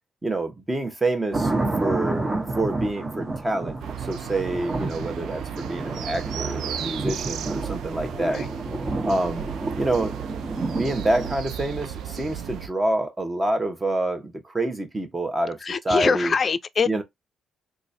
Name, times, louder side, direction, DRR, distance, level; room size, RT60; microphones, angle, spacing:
voice 1, 0.2-1.5 1.8-2.3 2.6-8.4 9.0-9.4 9.8-16.3 16.9-17.0, right 2 dB, 20° right, 1.0 m, -27 dB
sound 1, 1.3-11.3, right 2 dB, 40° right, 1.4 m, -30 dB
sound 2, 3.8-12.7, right 10 dB, 80° right, 0.4 m, -35 dB
voice 2, 8.1-8.5 15.6-17.0, left 5 dB, 40° left, 0.4 m, -24 dB
3.8 x 2.4 x 2.6 m
cardioid pair, 90°, 0 cm